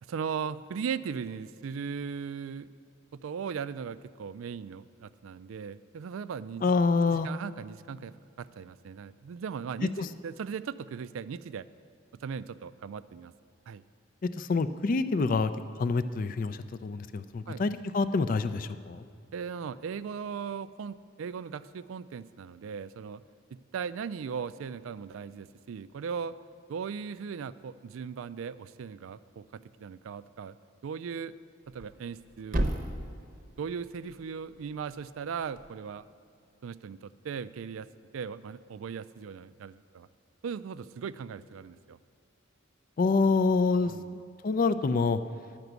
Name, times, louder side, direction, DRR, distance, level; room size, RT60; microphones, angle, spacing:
voice 1, 0.0-2.7 3.1-6.7 7.1-11.7 12.2-13.3 13.7-13.8 17.5-17.6 19.3-23.2 23.5-26.3 26.7-29.4 29.8-30.6 30.8-31.3 31.7-32.7 33.6-36.0 36.6-37.9 38.1-40.1 40.4-42.0 43.9-44.1, right 6 dB, 90° right, 15 dB, 0.4 m, -38 dB
voice 2, 6.6-7.3 10.0-10.1 14.4-15.5 15.8-19.0 43.0-45.2, left 4 dB, 45° left, 12 dB, 0.4 m, -27 dB
Thump thud, 31.6-35.7, right 1 dB, 45° right, 0.8 m, -36 dB
10.5 x 6.0 x 8.0 m, 2.3 s
head